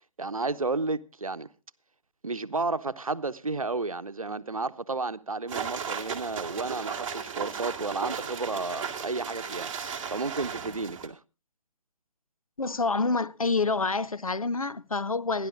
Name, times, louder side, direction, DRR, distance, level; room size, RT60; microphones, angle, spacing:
voice 1, 0.2-1.5 2.2-9.7 10.1-11.2, right 3 dB, 80° right, 0.9 m, -32 dB
sound 1, 5.5-11.1, right 7 dB, 25° right, 2.3 m, -35 dB
voice 2, 12.6-15.5, left 3 dB, 85° left, 0.7 m, -27 dB
27.5 x 11.0 x 2.5 m
figure-of-eight pair, 135°, 18 cm